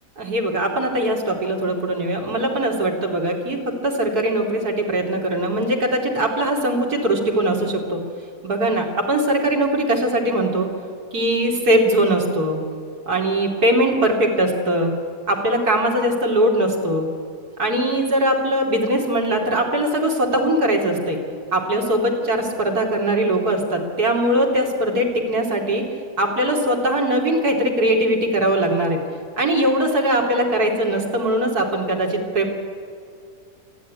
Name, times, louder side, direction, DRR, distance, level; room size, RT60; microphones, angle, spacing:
voice 1, 0.2-8.0 8.4-10.7 11.1-12.6 13.1-14.9 15.3-17.1 17.6-21.2 21.5-25.8 26.2-29.0 29.4-32.5, right 1 dB, 65° right, 0 dB, 3.3 m, -21 dB
26.0 x 10.5 x 9.6 m, 2.3 s
omnidirectional pair, 1.8 m